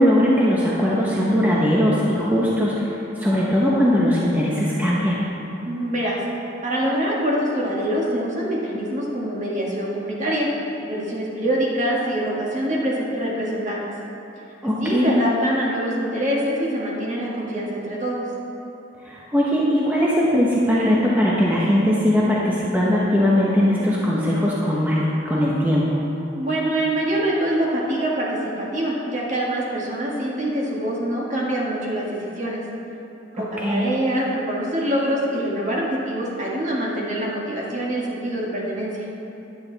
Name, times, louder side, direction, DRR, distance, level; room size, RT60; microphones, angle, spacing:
voice 1, 0.0-5.3 14.6-15.1 19.0-26.0 33.4-33.8, equal, 10° right, -6 dB, 0.9 m, -20 dB
voice 2, 5.6-6.2 6.6-13.8 14.8-18.3 26.4-32.6 33.3-39.1, right 1 dB, 40° right, -4 dB, 1.7 m, -25 dB
10.5 x 9.1 x 4.0 m, 3.0 s
head